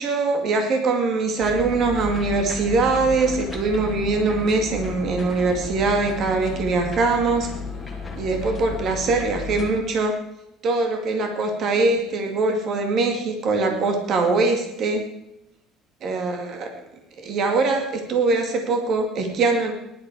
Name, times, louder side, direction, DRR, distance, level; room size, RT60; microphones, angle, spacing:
voice 1, 0.0-7.5 8.2-10.2 10.6-15.0 16.0-16.7 17.2-19.7, right 3 dB, 40° right, 4 dB, 2.3 m, -22 dB
sound 1, 1.4-9.7, left 4 dB, 5° left, 2.7 m, -33 dB
18.0 x 11.5 x 4.7 m, 0.86 s
cardioid pair, 150°, 0 cm